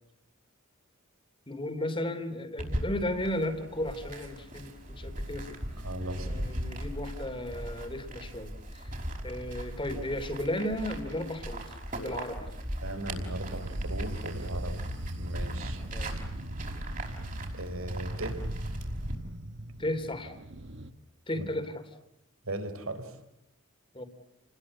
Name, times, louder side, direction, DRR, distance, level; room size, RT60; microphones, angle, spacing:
voice 1, 1.5-5.6 6.1-9.0 9.2-12.5 15.9-16.1 19.8-20.3 21.3-21.8 23.9-24.0, left 1 dB, 25° left, 8 dB, 3.1 m, -34 dB
sound 1, 2.6-19.2, right 1 dB, 40° right, 5.4 m, -38 dB
voice 2, 5.8-6.6 12.8-14.8 15.1-15.8 17.5-18.4 21.4-21.5 22.4-23.2, right 1 dB, 75° right, 10 dB, 4.0 m, -37 dB
sound 2, 13.0-20.9, right 1 dB, 55° right, 1.5 m, -40 dB
29.5 x 21.0 x 8.6 m, 0.81 s
head